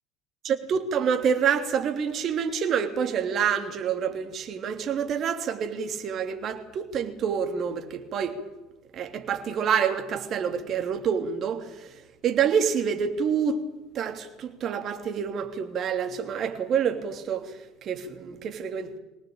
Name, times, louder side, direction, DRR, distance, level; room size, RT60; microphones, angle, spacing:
voice 1, 0.4-8.4 8.9-11.9 12.2-13.6 13.9-19.0, right 7 dB, 50° right, 3.2 m, -27 dB
23.5 x 19.0 x 8.9 m
hypercardioid pair, 65°, 0 cm